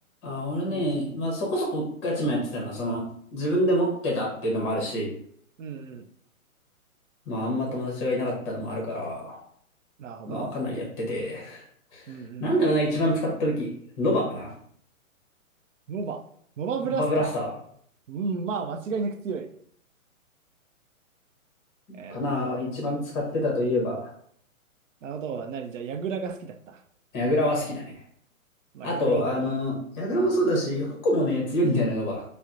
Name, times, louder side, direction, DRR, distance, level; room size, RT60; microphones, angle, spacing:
voice 1, 0.2-3.0 3.3-5.1 7.3-9.4 10.3-11.6 11.9-14.5 16.9-17.5 22.1-24.1 27.1-27.9 28.8-32.2, equal, 20° left, -2 dB, 0.7 m, -26 dB
voice 2, 0.7-1.2 5.6-6.1 10.0-10.5 12.1-12.5 15.9-16.2 16.6-17.4 18.1-19.5 21.9-22.6 25.0-26.8 28.7-29.4, right 5 dB, 60° right, 8 dB, 0.5 m, -33 dB
4.2 x 2.0 x 2.4 m, 0.65 s
hypercardioid pair, 145°, 43 cm